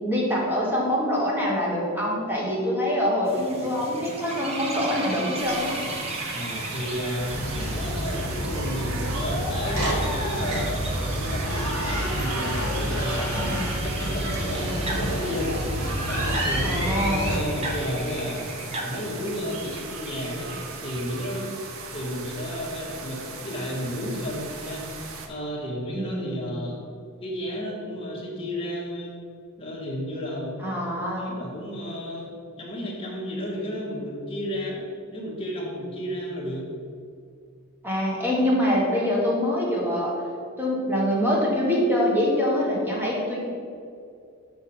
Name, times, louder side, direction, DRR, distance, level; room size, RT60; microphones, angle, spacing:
voice 1, 0.0-5.7 16.6-17.3 25.9-26.5 30.6-31.3 37.8-40.1 40.6-43.4, equal, 10° right, -4 dB, 1.5 m, -24 dB
sound 1, 3.3-19.8, right 2 dB, 30° right, 0.8 m, -37 dB
sound 2, 5.4-25.3, right 4 dB, 65° right, 0.8 m, -38 dB
voice 2, 6.3-7.3 7.7-10.7 11.1-15.6 16.0-18.5 18.8-20.5 20.8-21.5 21.9-24.9 25.3-26.8 27.2-29.2 29.6-30.6 31.0-32.3 32.6-34.8 35.1-36.7, equal, 25° left, -4 dB, 1.5 m, -32 dB
sound 3, 7.2-17.4, equal, 90° right, 1.5 m, -28 dB
6.2 x 5.9 x 4.3 m, 2.4 s
head